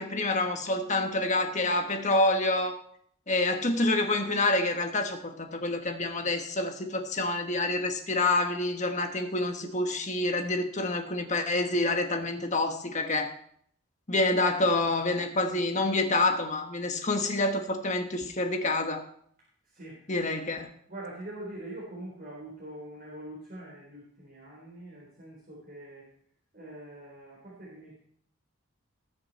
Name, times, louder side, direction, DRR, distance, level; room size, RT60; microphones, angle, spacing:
voice 1, 0.0-2.8 3.3-13.3 14.1-19.0 20.1-20.7, left 2 dB, 35° left, 5 dB, 1.3 m, -27 dB
voice 2, 19.6-20.0 20.9-26.1 26.5-27.9, right 1 dB, 45° right, -5 dB, 4.1 m, -44 dB
19.5 x 6.6 x 4.2 m, 0.64 s
head